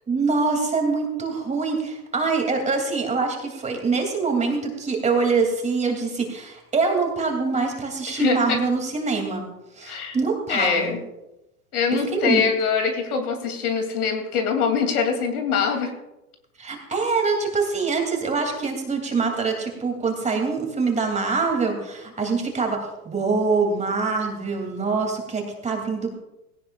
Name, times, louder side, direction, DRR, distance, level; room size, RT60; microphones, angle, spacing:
voice 1, 0.1-9.4 9.8-11.0 11.9-12.5 16.6-26.1, right 4 dB, 15° right, 3 dB, 2.7 m, -24 dB
voice 2, 8.1-8.6 9.8-10.2 10.5-11.0 11.7-15.9, left 6 dB, 70° left, 4 dB, 3.0 m, -23 dB
17.5 x 17.0 x 2.4 m, 0.94 s
hypercardioid pair, 110°, 45 cm